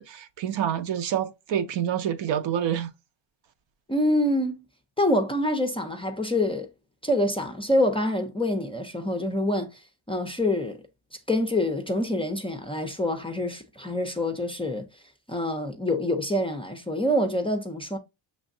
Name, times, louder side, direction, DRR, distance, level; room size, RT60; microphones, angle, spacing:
voice 1, 0.0-2.9, right 9 dB, 65° right, 0.7 m, -27 dB
voice 2, 3.9-4.6 5.0-6.7 7.0-9.7 10.1-10.8 11.3-14.9 15.3-18.0, left 1 dB, 10° left, 0.4 m, -26 dB
6.1 x 3.2 x 2.6 m
cardioid pair, 115°, 48 cm